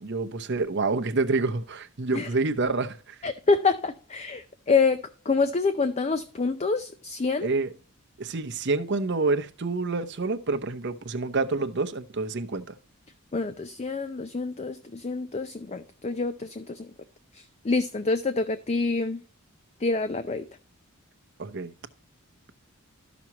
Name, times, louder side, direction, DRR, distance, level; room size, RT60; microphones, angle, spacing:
voice 1, 0.0-3.2 7.4-7.7 8.2-12.6 21.4-21.7, right 3 dB, 55° right, 0.8 m, -28 dB
voice 2, 3.2-7.5 13.3-16.9 17.6-19.2 19.8-20.4, left 4 dB, 30° left, 0.5 m, -27 dB
13.0 x 6.0 x 2.9 m
head